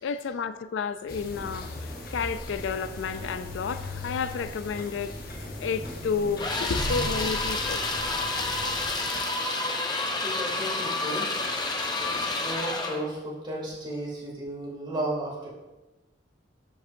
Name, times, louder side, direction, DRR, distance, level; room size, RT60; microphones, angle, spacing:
voice 1, 0.0-5.2 5.6-7.8, left 5 dB, 85° left, 0.4 m, -31 dB
sound 1, 1.1-9.0, left 1 dB, 50° left, 0.9 m, -38 dB
sound 2, 1.3-12.7, equal, 5° right, 1.0 m, -46 dB
sound 3, 6.4-13.0, left 2 dB, 20° left, 0.7 m, -29 dB
voice 2, 10.2-11.3 12.0-15.5, right 1 dB, 25° right, 2.5 m, -34 dB
13.0 x 5.4 x 2.6 m
head